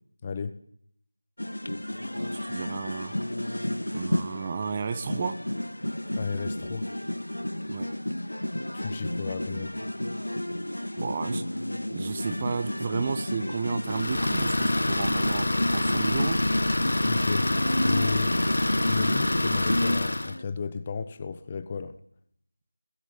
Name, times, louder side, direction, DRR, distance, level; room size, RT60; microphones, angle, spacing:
voice 1, 0.2-0.6 6.2-6.9 8.7-9.8 17.0-17.5 17.8-18.4 18.9-22.0, left 5 dB, 20° left, 1.1 m, -33 dB
sound 1, 1.4-20.4, left 1 dB, 80° left, 1.7 m, -32 dB
voice 2, 2.1-3.1 3.9-5.4 7.7-7.9 10.9-11.7 11.9-16.4, right 5 dB, 20° right, 1.2 m, -32 dB
Idling, 13.8-20.4, left 1 dB, 60° left, 1.4 m, -26 dB
26.0 x 21.5 x 9.6 m
figure-of-eight pair, 170°, 0 cm